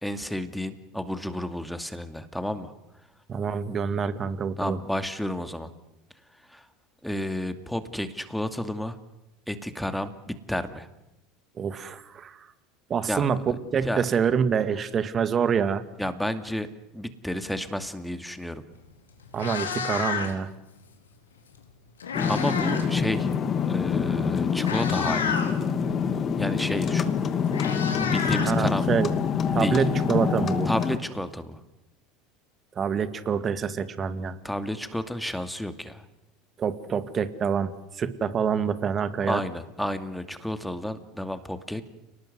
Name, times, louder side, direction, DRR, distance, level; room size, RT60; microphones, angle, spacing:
voice 1, 0.0-2.7 4.6-5.7 6.5-6.7 7.0-9.0 9.5-10.9 13.1-13.3 13.8-14.0 16.0-16.7 16.9-18.6 22.3-23.3 23.7-25.4 26.4-27.1 28.0-28.9 29.6-29.8 30.6-31.6 34.4-36.0 39.3-41.8, left 1 dB, 5° left, 10 dB, 2.4 m, -31 dB
voice 2, 3.3-4.8 11.6-12.5 12.9-15.8 19.3-20.5 28.5-29.1 29.5-30.7 32.8-34.4 36.6-39.4, right 7 dB, 35° right, 13 dB, 2.2 m, -26 dB
Meow, 18.7-18.9 19.2-20.5 21.6-22.9 23.2-23.5 24.2-24.3 24.6-25.5 26.8-26.9 27.2-29.1, left 6 dB, 90° left, 3.9 m, -31 dB
sound 1, 22.1-31.0, left 6 dB, 40° left, 2.4 m, -26 dB
30.0 x 19.5 x 8.1 m, 0.92 s
hypercardioid pair, 80°, 0 cm